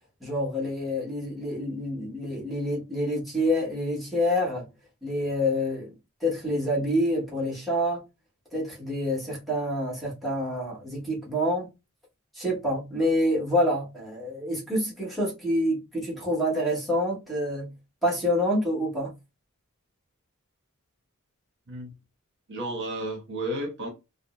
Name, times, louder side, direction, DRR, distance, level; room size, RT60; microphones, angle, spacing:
voice 1, 0.2-4.7 5.0-5.9 6.2-8.0 8.5-11.7 12.3-17.7 18.0-19.1, equal, ahead, 1.3 m, -27 dB
voice 2, 22.5-23.9, right 1 dB, 55° right, 1.0 m, -32 dB
3.6 x 2.1 x 2.4 m
head